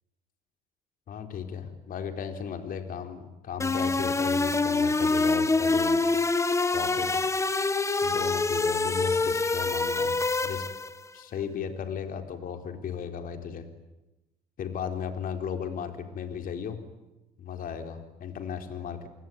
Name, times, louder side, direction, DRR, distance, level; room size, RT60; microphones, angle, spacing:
voice 1, 1.1-6.0 6.7-7.1 8.0-10.1 10.4-10.6 11.1-13.6 14.6-16.8 17.4-19.1, left 7 dB, 55° left, 6 dB, 4.2 m, -35 dB
sound 1, 3.6-11.0, left 3 dB, 15° left, 1.3 m, -25 dB
30.0 x 20.5 x 9.5 m, 0.99 s
cardioid pair, 110°, 17 cm